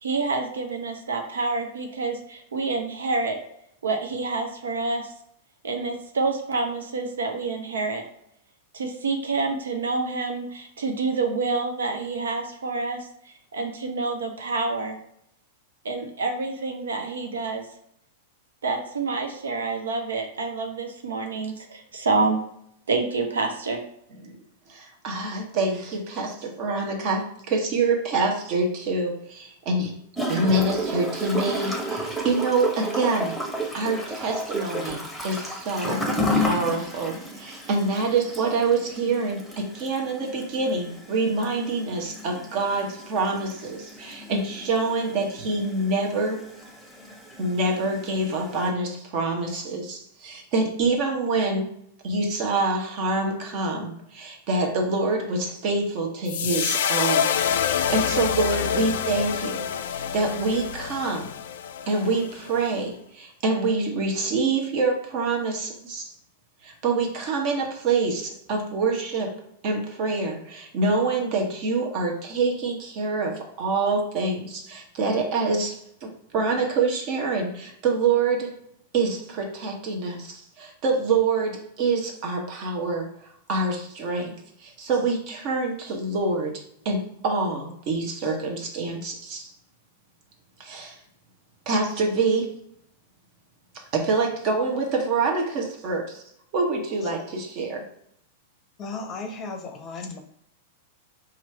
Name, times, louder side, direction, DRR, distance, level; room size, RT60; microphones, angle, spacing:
voice 1, 0.0-3.4 3.8-5.1 5.6-8.0 8.7-15.0 15.8-17.6 18.6-22.4 22.9-23.8, right 3 dB, 70° right, 4 dB, 0.6 m, -28 dB
voice 2, 24.7-29.9 30.2-33.3 33.7-36.0 36.3-46.4 47.4-51.7 52.0-59.6 59.9-61.3 61.9-66.1 66.6-69.3 69.6-78.5 78.9-83.1 83.5-84.3 84.6-89.4 90.6-91.0 91.7-92.5 93.9-96.2 96.5-97.8, right 3 dB, 45° right, 1 dB, 1.0 m, -26 dB
Gurgling / Toilet flush, 30.2-48.7, equal, ahead, 0.9 m, -32 dB
sound 1, 56.3-62.6, left 8 dB, 60° left, 0.3 m, -27 dB
voice 3, 98.8-100.2, left 3 dB, 30° left, 4 dB, 0.6 m, -35 dB
3.0 x 2.5 x 4.3 m, 0.72 s
figure-of-eight pair, 95°, 0 cm